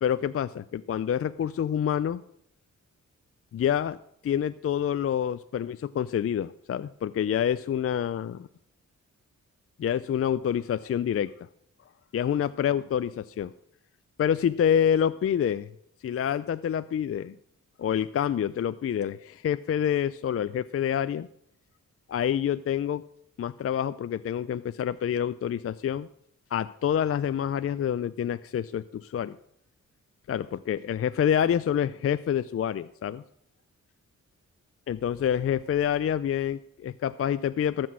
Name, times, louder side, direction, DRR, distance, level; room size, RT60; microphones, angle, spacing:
voice 1, 0.0-2.2 3.5-4.0 4.2-8.5 9.8-11.3 12.1-13.5 14.2-15.7 16.0-17.3 17.8-21.3 22.1-23.0 23.4-26.1 26.5-29.3 30.3-33.2 34.9-37.9, left 9 dB, 50° left, 13 dB, 0.4 m, -27 dB
14.0 x 6.2 x 6.1 m, 0.72 s
cardioid pair, 75°, 31 cm